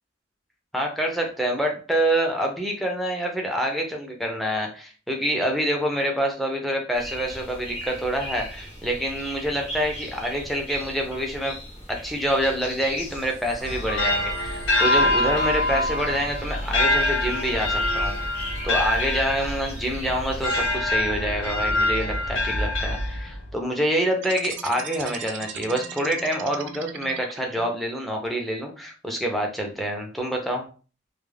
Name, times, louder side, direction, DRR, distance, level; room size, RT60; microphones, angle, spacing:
voice 1, 0.7-11.6 11.9-18.2 18.6-30.7, equal, ahead, 1 dB, 0.5 m, -26 dB
sound 1, 6.9-20.8, equal, 35° left, 0.8 m, -39 dB
sound 2, 13.6-23.5, left 1 dB, 80° left, 0.6 m, -25 dB
sound 3, 24.2-27.7, right 8 dB, 75° right, 0.3 m, -37 dB
2.3 x 2.1 x 3.2 m, 0.36 s
head